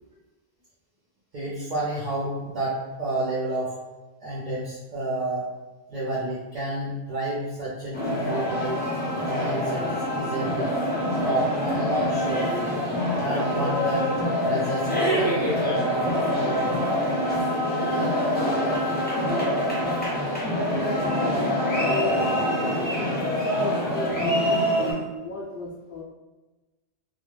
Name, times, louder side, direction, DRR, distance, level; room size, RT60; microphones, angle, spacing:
voice 1, 1.3-3.8 4.2-5.4 5.9-8.8 9.3-10.7 11.2-12.5 13.1-14.1 14.4-16.8, right 1 dB, 55° right, -6 dB, 0.7 m, -30 dB
sound 1, 7.9-24.9, equal, 10° left, 0.6 m, -25 dB
voice 2, 20.6-26.0, left 3 dB, 65° left, -2 dB, 0.7 m, -35 dB
2.2 x 2.2 x 3.2 m, 1.2 s
omnidirectional pair, 1.1 m